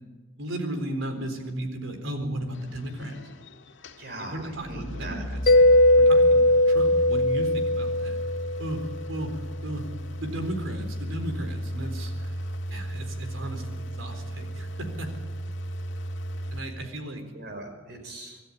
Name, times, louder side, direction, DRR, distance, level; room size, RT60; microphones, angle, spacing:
voice 1, 0.4-3.2 4.2-8.2 8.6-9.3 9.6-9.9 10.2-15.1 16.5-17.3, right 1 dB, 90° right, 6 dB, 4.0 m, -35 dB
sound 1, 2.5-16.6, equal, 75° left, 1.8 m, -36 dB
voice 2, 4.0-5.2 17.3-18.4, right 2 dB, 55° right, 5 dB, 4.7 m, -40 dB
Mallet percussion, 5.5-8.9, left 1 dB, 45° left, 0.8 m, -19 dB
25.5 x 13.5 x 10.0 m, 1.3 s
head